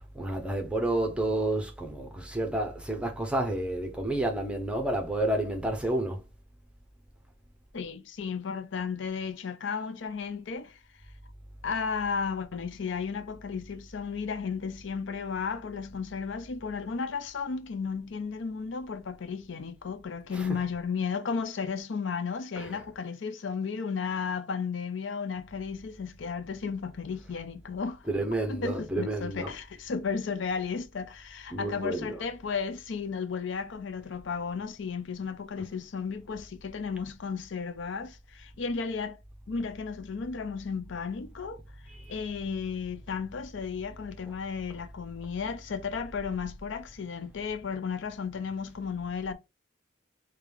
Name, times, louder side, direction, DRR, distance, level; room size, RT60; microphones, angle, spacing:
voice 1, 0.1-6.2 20.3-20.6 22.5-22.8 28.0-29.5 31.5-32.2 41.9-42.4, right 1 dB, 5° right, 0.7 m, -30 dB
voice 2, 7.7-10.8 11.6-28.1 28.5-39.2 39.5-41.6 42.1-49.3, left 5 dB, 70° left, 0.5 m, -34 dB
4.9 x 2.3 x 3.4 m
head